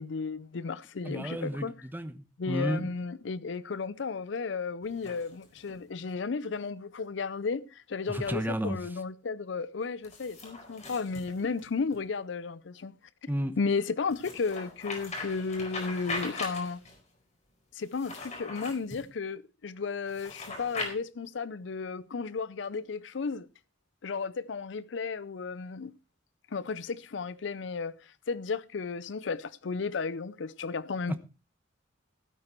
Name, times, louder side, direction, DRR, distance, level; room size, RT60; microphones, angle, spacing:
voice 1, 0.0-1.7 2.4-13.0 13.2-13.3 13.6-16.8 17.7-23.5 24.0-25.9 26.5-31.1, left 4 dB, 70° left, 0.5 m, -34 dB
voice 2, 1.0-2.9 8.1-8.8 13.3-13.5 31.1-31.2, equal, 10° right, 1.0 m, -32 dB
sound 1, 4.8-5.8 8.1-8.4 10.0-12.0 14.1-17.0 17.8-19.1 20.1-20.9, left 3 dB, 35° left, 4.4 m, -40 dB
16.0 x 8.9 x 4.4 m
head